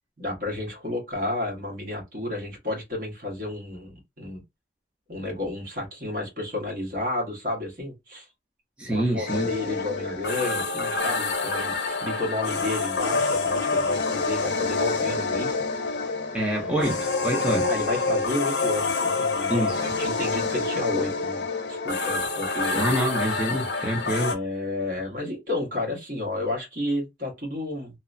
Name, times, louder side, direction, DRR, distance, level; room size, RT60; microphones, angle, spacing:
voice 1, 0.2-4.4 5.1-8.3 8.9-15.6 17.6-22.9 24.3-28.0, left 2 dB, 50° right, 1.3 m, -31 dB
voice 2, 8.8-9.5 16.3-17.7 19.5-19.8 22.7-24.4, right 1 dB, 5° right, 0.5 m, -26 dB
sound 1, 9.3-24.4, left 3 dB, 75° left, 0.6 m, -27 dB
3.0 x 2.0 x 2.5 m
head